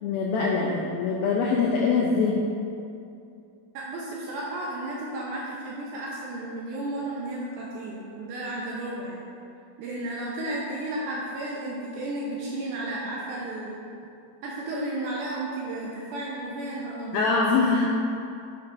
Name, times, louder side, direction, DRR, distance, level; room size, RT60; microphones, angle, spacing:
voice 1, 0.0-2.4 17.1-17.8, left 4 dB, 85° left, -2 dB, 2.1 m, -23 dB
voice 2, 3.7-9.2 9.8-13.8 14.4-17.4, right 1 dB, 80° right, -4 dB, 2.2 m, -33 dB
9.9 x 7.6 x 2.5 m, 2.5 s
omnidirectional pair, 4.9 m